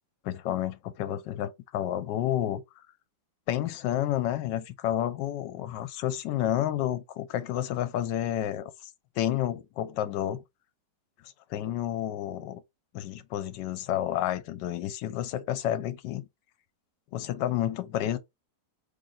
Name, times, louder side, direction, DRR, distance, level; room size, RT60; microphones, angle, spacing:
voice 1, 0.2-2.6 3.5-8.7 9.2-10.4 11.5-12.6 12.9-16.3 17.1-18.2, left 12 dB, 80° left, 1.2 m, -30 dB
3.1 x 2.5 x 3.9 m
omnidirectional pair, 1.9 m